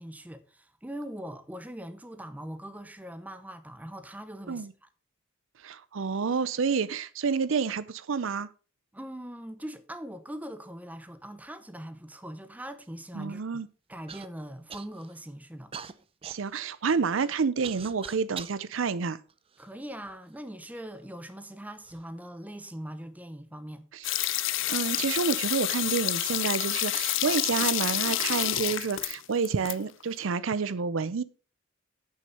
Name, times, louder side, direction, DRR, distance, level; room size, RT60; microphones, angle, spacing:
voice 1, 0.0-4.7 8.9-13.4 13.9-15.7 19.6-23.9, right 1 dB, 10° right, 0.8 m, -41 dB
voice 2, 5.6-8.5 13.1-13.7 16.2-19.2 23.9-24.0 24.7-31.2, right 5 dB, 75° right, 0.5 m, -29 dB
Human voice / Cough, 14.1-14.3 14.7-15.2 15.7-18.6 19.3-20.1 20.9-21.0 21.7-22.0, right 7 dB, 30° right, 0.5 m, -44 dB
sound 1, 24.0-29.7 30.0-30.1, left 14 dB, 70° left, 0.6 m, -29 dB
8.5 x 6.5 x 5.2 m
head